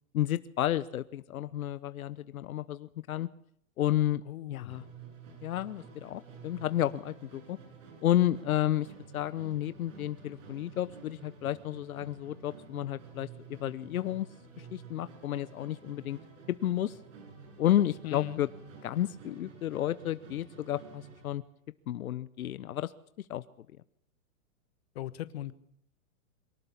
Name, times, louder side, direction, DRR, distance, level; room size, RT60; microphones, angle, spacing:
voice 1, 0.1-3.3 3.8-4.2 4.5-4.8 5.4-7.6 8.0-8.9 9.1-14.3 14.6-16.2 16.6-17.0 17.6-18.5 18.8-21.4 21.9-22.9 23.2-23.4, left 12 dB, 70° left, 15 dB, 1.0 m, -31 dB
voice 2, 4.3-4.8 18.0-18.4 24.9-25.5, left 13 dB, 45° left, 14 dB, 1.3 m, -38 dB
Musical instrument, 4.7-21.4, right 4 dB, 60° right, 7.7 m, -51 dB
23.5 x 18.0 x 8.5 m, 0.68 s
supercardioid pair, 170°, 43 cm